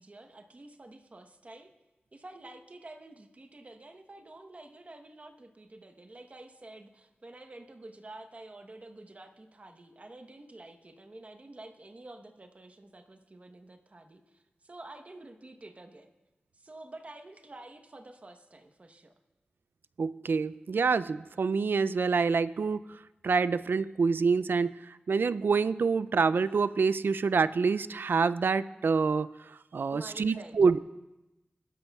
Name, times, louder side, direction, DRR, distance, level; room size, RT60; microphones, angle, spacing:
voice 1, 0.0-1.7 2.1-16.1 16.5-19.1 29.9-30.6, right 2 dB, 40° right, 5 dB, 1.0 m, -49 dB
voice 2, 20.0-30.8, right 5 dB, 80° right, 16 dB, 0.3 m, -27 dB
21.5 x 12.0 x 2.3 m, 1.0 s
wide cardioid pair, 85°, 3 cm